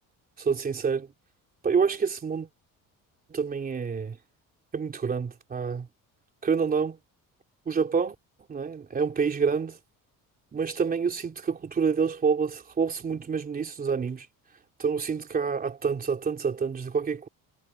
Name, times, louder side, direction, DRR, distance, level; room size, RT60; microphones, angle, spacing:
voice 1, 0.4-1.1 1.6-2.5 3.3-4.2 4.7-5.9 6.4-7.0 7.7-8.2 8.5-9.8 10.5-14.3 14.8-17.3, right 5 dB, 25° right, 3.4 m, -27 dB
cardioid pair, 170°, 34 cm